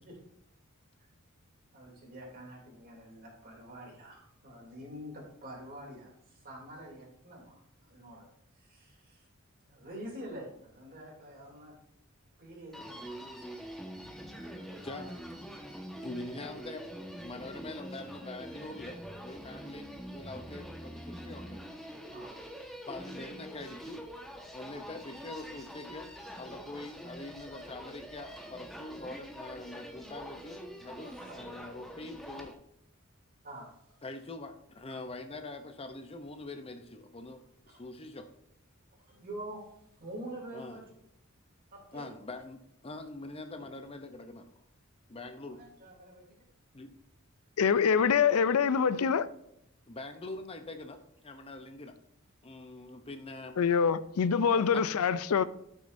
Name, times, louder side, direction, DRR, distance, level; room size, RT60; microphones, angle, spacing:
voice 1, 1.7-8.2 8.5-9.3 9.6-11.8 12.4-13.0 14.4-15.1 19.6-19.7 22.1-22.3 24.7-24.8 31.0-31.3 33.4-34.0 37.7-37.8 39.0-39.7 40.0-40.9 41.7-42.1 45.5-46.2, right 1 dB, 45° right, 2.9 m, -46 dB
Human voice, 12.7-32.5, equal, ahead, 1.3 m, -45 dB
voice 2, 16.0-16.9 17.2-21.6 22.9-24.0 24.5-26.1 26.3-32.6 34.0-38.3 40.5-40.8 41.9-44.5 45.1-45.6 46.7-46.9 49.9-52.0 52.4-53.6 54.5-54.8, left 2 dB, 25° left, 0.6 m, -44 dB
voice 3, 47.6-49.3 53.6-55.4, left 6 dB, 85° left, 0.4 m, -25 dB
12.5 x 6.3 x 2.7 m
head